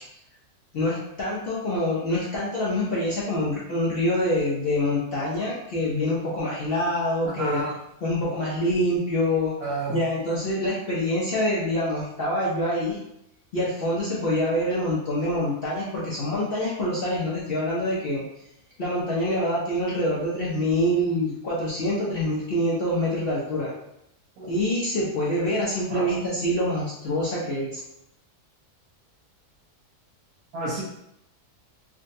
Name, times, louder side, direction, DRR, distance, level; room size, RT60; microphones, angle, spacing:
voice 1, 0.7-7.6 8.0-9.5 9.9-13.0 13.5-18.2 18.8-23.7 24.5-27.8, left 1 dB, 60° left, -6 dB, 0.6 m, -25 dB
voice 2, 7.4-7.7 9.6-10.1 24.4-24.6 25.9-26.2 30.5-30.8, right 2 dB, 70° right, -7 dB, 1.2 m, -30 dB
3.7 x 2.2 x 2.6 m, 0.80 s
omnidirectional pair, 1.7 m